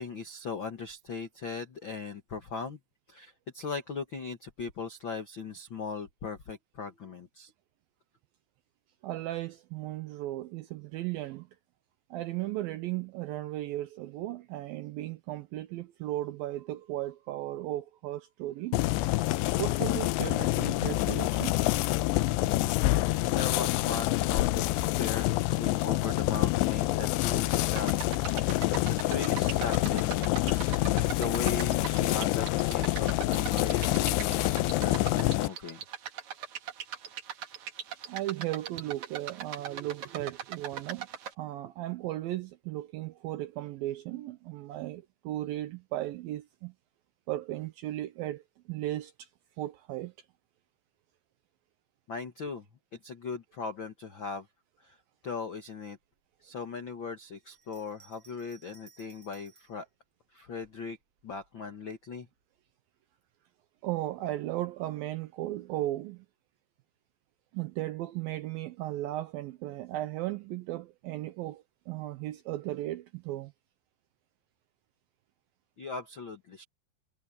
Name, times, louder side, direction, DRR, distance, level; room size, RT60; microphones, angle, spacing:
voice 1, 0.0-2.8 3.1-7.5 23.3-24.7 25.0-27.9 28.9-30.9 31.1-35.8 52.1-52.6 53.0-54.5 54.8-55.0 55.2-56.0 56.4-59.8 60.3-61.0 61.2-62.3 75.8-76.6, left 5 dB, 70° left, 1.1 m, -38 dB
voice 2, 9.0-11.5 12.1-18.8 19.6-21.6 38.1-41.1 41.4-46.7 47.3-48.4 48.7-49.3 49.6-50.1 63.8-66.3 67.5-73.5, right 15 dB, 85° right, 2.1 m, -36 dB
sound 1, 18.7-35.5, left 17 dB, 85° left, 2.9 m, -27 dB
sound 2, 27.7-41.3, right 9 dB, 55° right, 2.4 m, -40 dB
Bell, 57.4-59.8 60.6-61.5, right 5 dB, 30° right, 5.3 m, -60 dB
omnidirectional pair, 4.9 m